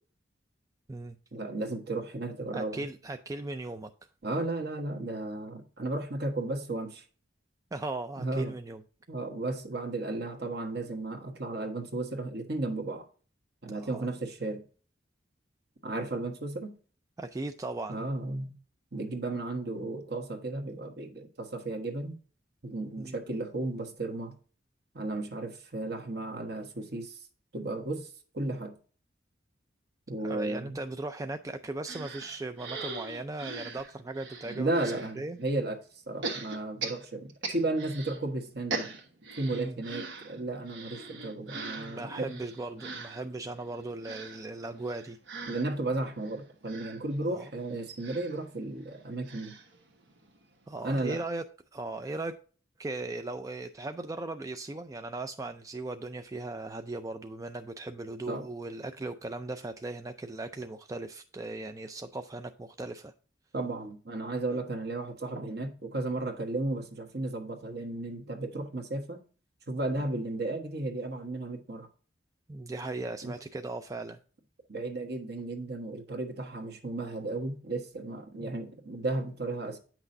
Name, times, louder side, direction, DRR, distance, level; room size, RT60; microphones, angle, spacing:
voice 1, 1.3-2.9 4.2-7.0 8.2-8.6 9.1-13.1 13.6-14.6 15.8-16.7 17.9-18.5 18.9-22.2 22.6-24.3 24.9-27.2 27.5-28.1 28.3-28.7 30.1-30.8 34.5-35.8 36.1-38.9 39.4-42.4 45.5-49.6 50.8-51.2 58.3-58.5 63.5-69.2 69.7-71.9 73.2-73.3 74.7-79.8, right 2 dB, 60° right, 1.2 m, -34 dB
voice 2, 2.5-3.9 7.7-8.8 13.8-14.1 17.2-18.1 23.0-23.2 30.2-34.7 35.2-35.4 39.5-39.8 41.8-45.2 47.3-47.5 50.7-51.4 51.7-52.4 52.8-63.1 69.9-70.2 72.5-74.2 78.4-78.5, right 2 dB, 20° right, 0.4 m, -38 dB
sound 1, 31.9-35.1 36.2-38.2 38.5-50.4 50.8-50.9 51.1-51.2, right 3 dB, 75° right, 1.3 m, -41 dB
8.7 x 6.0 x 2.6 m
head